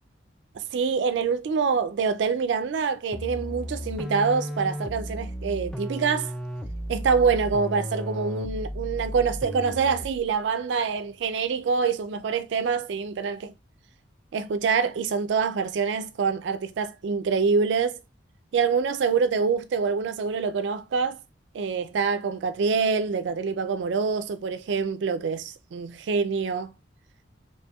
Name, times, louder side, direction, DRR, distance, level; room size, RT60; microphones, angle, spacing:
voice 1, 0.5-6.3 6.9-13.5 14.3-18.0 18.5-21.2 21.5-26.7, right 5 dB, 70° right, 0.4 m, -25 dB
sound 1, 3.1-10.3, equal, 5° left, 0.3 m, -34 dB
4.2 x 2.9 x 2.3 m
head